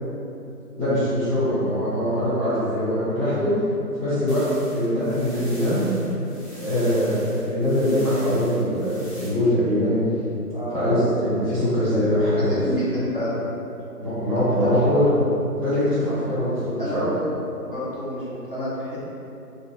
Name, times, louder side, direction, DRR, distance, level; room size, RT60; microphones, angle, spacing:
voice 1, 0.8-3.5 4.0-4.4 4.7-5.9 6.5-9.9 10.7-12.6 14.0-15.1 15.5-17.1, equal, 20° left, -16 dB, 1.4 m, -22 dB
sound 1, 4.3-9.3, equal, 40° left, 1.0 m, -44 dB
voice 2, 10.5-11.0 11.4-11.5 11.9-12.0 12.4-13.3 14.3-14.9 16.8-17.4 17.6-19.0, equal, 35° right, -10 dB, 0.6 m, -29 dB
2.4 x 2.3 x 3.6 m, 2.8 s
figure-of-eight pair, 170°, 48 cm